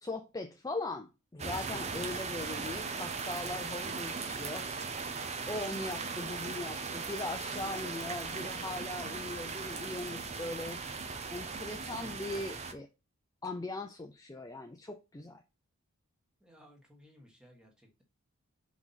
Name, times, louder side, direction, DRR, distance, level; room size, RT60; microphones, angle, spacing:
voice 1, 0.0-4.7 5.5-10.8 11.3-12.9 13.4-15.4, left 2 dB, 15° left, 0.5 m, -40 dB
sound 1, 1.4-12.7, right 4 dB, 30° right, 0.8 m, -38 dB
voice 2, 16.4-18.0, equal, 5° right, 1.5 m, -59 dB
4.9 x 4.0 x 5.7 m
head